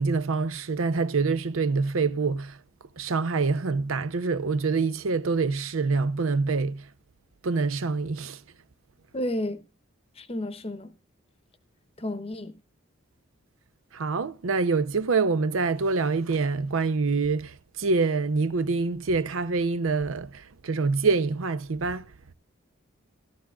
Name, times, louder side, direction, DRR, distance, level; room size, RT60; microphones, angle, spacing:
voice 1, 0.0-2.6 3.0-6.9 7.4-8.4 13.9-22.0, right 4 dB, 85° right, 0.6 m, -26 dB
voice 2, 9.1-9.6 10.2-10.9 12.0-12.5, left 1 dB, 30° left, 0.8 m, -31 dB
14.5 x 12.5 x 2.3 m
head